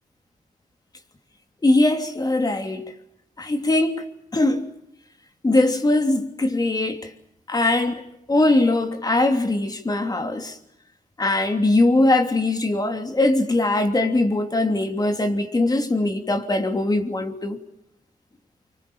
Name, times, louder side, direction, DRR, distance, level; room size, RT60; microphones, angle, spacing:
voice 1, 1.6-2.8 3.4-4.1 4.3-4.7 5.4-7.1 7.5-10.6 11.2-17.6, left 2 dB, 25° left, 3.1 m, -21 dB
29.5 x 25.5 x 7.1 m
wide cardioid pair, 115°, 14 cm